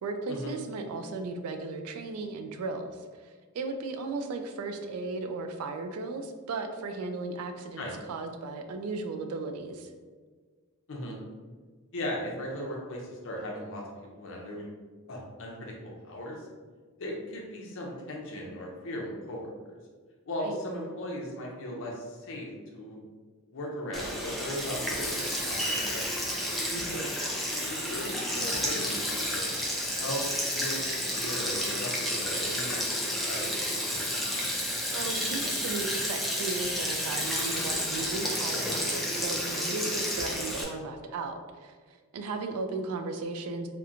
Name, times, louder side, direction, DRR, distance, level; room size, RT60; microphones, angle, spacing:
voice 1, 0.0-9.9 20.4-20.6 26.7-27.1 34.9-43.7, right 3 dB, 75° right, 7 dB, 0.3 m, -36 dB
voice 2, 11.9-14.7 15.1-15.7 16.0-16.5 17.0-19.5 20.3-23.0 23.5-26.1 26.9-29.5 30.0-30.2 30.5-33.5, left 1 dB, 65° left, -1 dB, 0.6 m, -37 dB
Sink (filling or washing), 23.9-40.6, equal, ahead, 0.3 m, -31 dB
2.8 x 2.1 x 2.4 m, 1.5 s
head